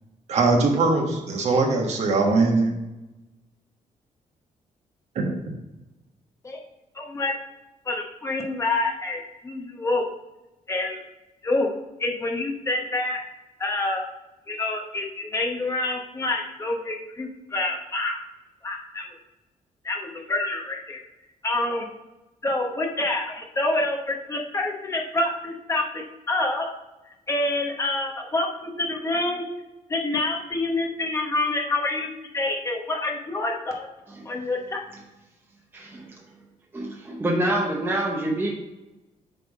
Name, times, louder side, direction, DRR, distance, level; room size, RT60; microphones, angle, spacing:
voice 1, 0.3-2.7 5.1-5.3, right 3 dB, 55° right, 1 dB, 1.3 m, -21 dB
voice 2, 6.9-7.3 7.9-10.1 10.7-11.0 11.4-11.7 12.0-13.2 13.6-14.0 14.5-18.2 18.6-19.0 19.8-21.0 21.4-21.9 22.4-26.7 27.3-29.4 29.9-33.9 34.2-34.8, left 2 dB, 20° left, 0 dB, 0.9 m, -27 dB
voice 3, 35.7-36.0 36.7-38.5, right 1 dB, 15° right, -2 dB, 0.8 m, -26 dB
7.9 x 3.5 x 5.3 m, 1.0 s
wide cardioid pair, 170°, 13 cm